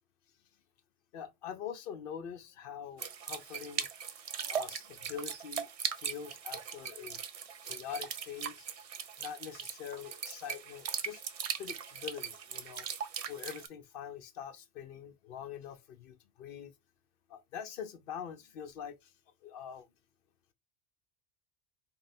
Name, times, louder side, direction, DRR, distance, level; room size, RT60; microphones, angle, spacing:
voice 1, 1.1-3.9 4.4-5.7 6.0-7.2 7.6-8.7 9.2-11.2 11.6-12.9 13.3-16.7 17.3-19.1 19.4-19.9, left 8 dB, 65° left, 0.7 m, -44 dB
sound 1, 3.0-13.7, right 7 dB, 55° right, 0.4 m, -39 dB
4.1 x 2.1 x 4.1 m
omnidirectional pair, 1.1 m